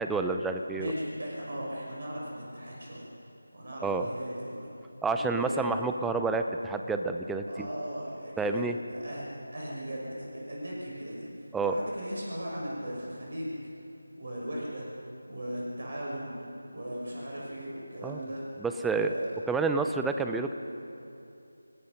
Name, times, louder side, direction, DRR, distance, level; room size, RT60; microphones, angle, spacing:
voice 1, 0.0-0.9 3.8-4.1 5.0-7.7 8.4-8.7 11.5-11.7 18.0-18.2 18.6-19.1 19.5-20.5, right 4 dB, 5° right, 6 dB, 0.7 m, -29 dB
voice 2, 0.8-3.1 3.5-4.7 5.2-5.8 7.5-8.6 8.9-13.7 14.1-14.9 15.3-16.3 16.7-18.4 19.0-19.3, equal, 50° right, -4 dB, 6.2 m, -38 dB
29.5 x 19.5 x 5.5 m, 2.7 s
figure-of-eight pair, 160°, 0 cm